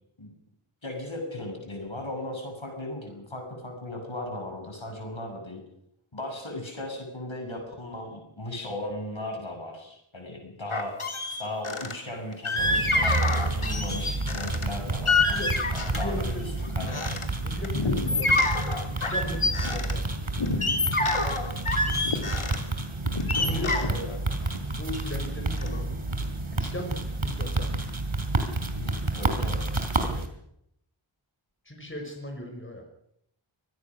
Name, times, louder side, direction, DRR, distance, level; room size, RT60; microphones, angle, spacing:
voice 1, 0.8-5.6 6.1-10.9 11.4-16.4 16.7-17.0 23.3-24.1 28.8-29.6, left 1 dB, 65° left, 2 dB, 7.7 m, -37 dB
sound 1, 10.7-11.9 12.4-14.7 15.1-16.2 16.6-17.3 17.6-19.9 20.4-22.6 23.0-25.3 25.6-25.8, left 2 dB, 80° left, 3.0 m, -27 dB
sound 2, 12.6-30.3, right 2 dB, 70° right, 3.4 m, -30 dB
voice 2, 15.3-15.6 15.9-16.6 17.4-18.4 19.0-20.1 23.4-23.9 24.7-25.9 26.5-27.8 30.0-30.3 31.6-32.8, left 1 dB, 25° left, 2 dB, 5.6 m, -37 dB
24.5 x 20.0 x 6.2 m, 0.75 s
wide cardioid pair, 40°, 49 cm